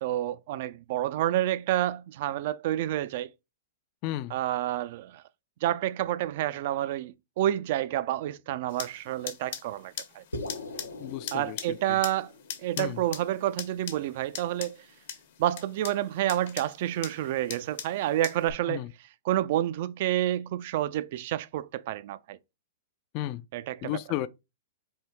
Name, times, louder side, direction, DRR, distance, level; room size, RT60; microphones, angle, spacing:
voice 1, 0.0-3.3 4.3-5.2 5.6-10.2 11.3-12.3 12.6-14.8 15.4-18.8 19.2-22.4 23.5-24.0, right 13 dB, 55° right, 0.3 m, -29 dB
voice 2, 4.0-4.3 11.0-12.0 12.8-13.0 18.7-18.9 23.1-23.4 23.8-24.3, left 14 dB, 40° left, 0.3 m, -33 dB
sound 1, 8.7-18.5, left 9 dB, 60° left, 1.0 m, -42 dB
sound 2, 10.3-14.7, left 2 dB, 85° left, 0.8 m, -42 dB
4.4 x 2.7 x 3.4 m
hypercardioid pair, 110°, 0 cm